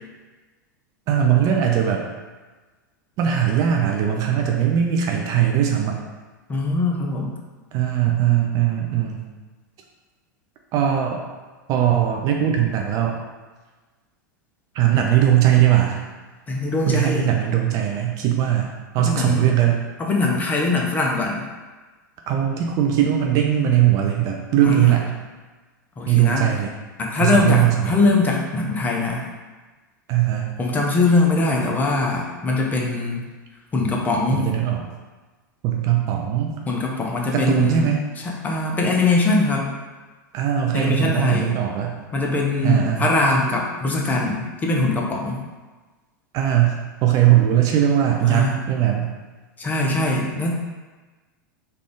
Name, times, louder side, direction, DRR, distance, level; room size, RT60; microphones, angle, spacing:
voice 1, 1.1-2.0 3.2-6.0 7.7-9.3 10.7-11.2 11.7-13.2 14.8-16.0 16.9-18.7 18.9-19.8 22.3-25.1 26.1-26.7 27.2-28.0 30.1-30.6 34.3-34.8 35.6-36.6 37.3-38.0 40.3-42.0 42.6-43.1 46.3-49.1, right 10 dB, 35° right, 1 dB, 0.4 m, -20 dB
voice 2, 6.5-7.3 16.5-17.3 19.0-19.5 20.0-21.4 24.6-25.0 26.0-26.5 27.0-29.3 30.6-33.2 33.7-34.5 36.7-37.9 38.2-39.7 40.7-41.6 42.1-45.4 48.2-48.6 49.6-50.6, left 2 dB, 15° left, -1 dB, 0.5 m, -22 dB
3.3 x 2.4 x 3.4 m, 1.3 s
figure-of-eight pair, 90°, 11 cm